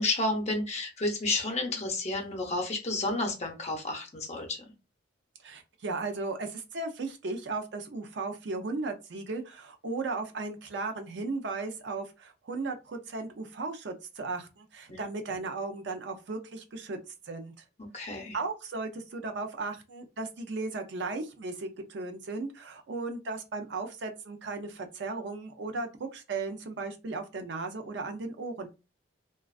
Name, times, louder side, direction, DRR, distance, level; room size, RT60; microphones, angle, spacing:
voice 1, 0.0-4.7 14.9-15.0 17.8-18.4, left 2 dB, 35° left, 2 dB, 0.6 m, -31 dB
voice 2, 5.4-17.0 17.3-17.5 18.3-28.7, right 3 dB, 65° right, 5 dB, 0.4 m, -36 dB
2.3 x 2.2 x 2.3 m, 0.28 s
head